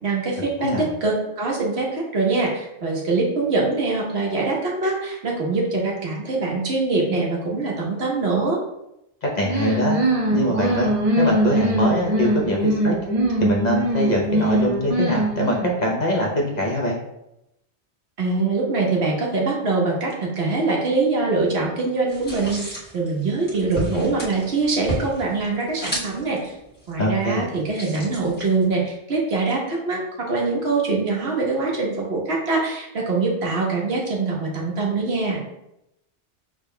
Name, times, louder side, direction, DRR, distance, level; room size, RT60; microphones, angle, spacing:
voice 1, 0.0-8.6 18.2-26.5 26.9-30.0 30.3-35.4, right 3 dB, 70° right, -2 dB, 1.3 m, -23 dB
voice 2, 9.2-10.0 10.3-13.0 13.4-17.0 27.0-27.5, left 1 dB, 45° left, -2 dB, 0.8 m, -23 dB
sound 1, 9.4-15.9, right 1 dB, 40° right, 0.7 m, -22 dB
sound 2, 22.1-28.8, equal, 15° left, 1.4 m, -34 dB
6.5 x 3.5 x 2.2 m, 0.85 s
omnidirectional pair, 1.1 m